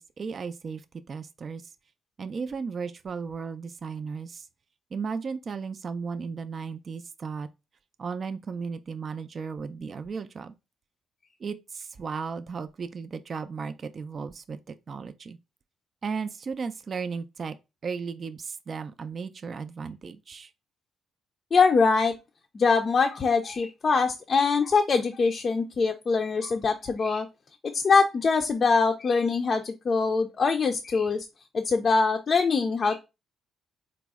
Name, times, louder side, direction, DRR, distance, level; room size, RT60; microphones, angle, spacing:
voice 1, 0.0-1.7 2.2-4.5 4.9-7.5 8.0-10.5 11.4-15.4 16.0-17.6 17.8-20.5, right 5 dB, 45° right, 0.4 m, -35 dB
voice 2, 21.5-22.1 22.5-27.3 27.6-31.3 31.5-33.0, left 4 dB, 40° left, 0.4 m, -23 dB
4.1 x 2.0 x 3.5 m
cardioid pair, 90°, 0 cm